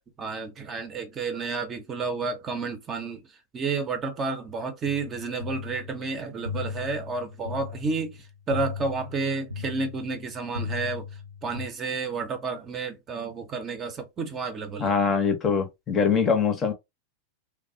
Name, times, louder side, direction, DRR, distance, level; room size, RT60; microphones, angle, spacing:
voice 1, 0.2-3.2 3.5-8.2 8.5-11.1 11.4-14.9, right 4 dB, 25° right, 0.7 m, -31 dB
sound 1, 4.8-11.7, left 5 dB, 80° right, 0.4 m, -37 dB
voice 2, 14.8-16.7, left 6 dB, 25° left, 0.7 m, -23 dB
3.2 x 2.0 x 2.6 m
figure-of-eight pair, 90°, 0 cm